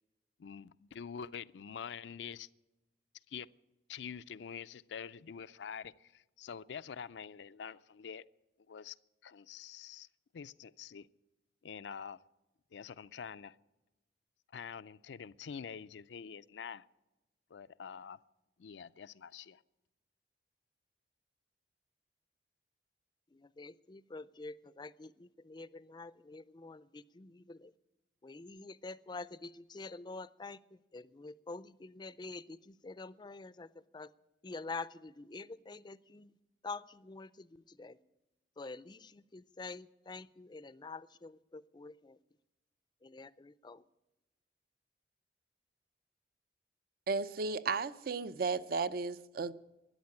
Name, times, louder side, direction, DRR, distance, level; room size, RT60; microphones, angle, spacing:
voice 1, 0.4-2.5 3.3-3.5 3.9-8.2 8.7-9.0 9.2-10.1 10.3-11.1 11.6-12.2 12.7-13.6 14.5-16.9 17.5-18.2 18.6-19.6, left 7 dB, 80° left, 0.4 m, -46 dB
voice 2, 23.3-27.7 28.2-30.6 30.9-33.7 33.9-34.1 34.4-36.3 36.6-38.0 38.6-42.2 43.0-43.8, left 3 dB, 25° left, 0.4 m, -47 dB
voice 3, 47.1-49.5, right 4 dB, 55° right, 0.5 m, -34 dB
13.0 x 10.5 x 9.5 m
head